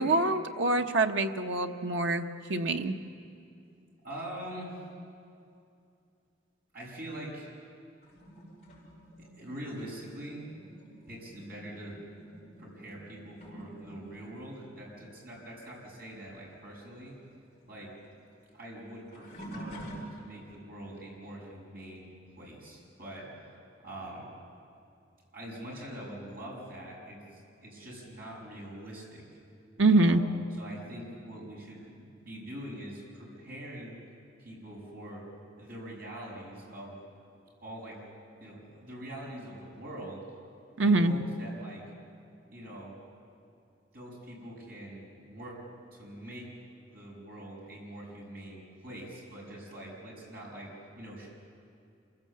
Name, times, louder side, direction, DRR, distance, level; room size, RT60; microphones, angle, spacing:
voice 1, 0.0-2.9 29.8-30.2 40.8-41.1, right 2 dB, 85° right, 6 dB, 1.0 m, -25 dB
voice 2, 4.0-4.8 6.7-7.5 9.4-10.4 11.1-12.0 12.6-17.1 17.7-17.9 18.5-22.1 22.4-23.4 23.8-24.3 25.3-29.2 29.9-30.2 30.6-34.0 34.4-35.2 35.6-37.0 37.6-38.0 38.4-40.2 40.7-41.8 42.5-43.0 43.9-45.6 45.9-46.5 46.9-51.3, right 1 dB, 50° right, -3 dB, 6.5 m, -44 dB
sound 1, 8.0-16.0 16.3-20.6 21.2-21.6 23.8-23.9 24.8-24.9, right 1 dB, 35° left, 5.5 m, -49 dB
27.0 x 16.0 x 7.5 m, 2.5 s
head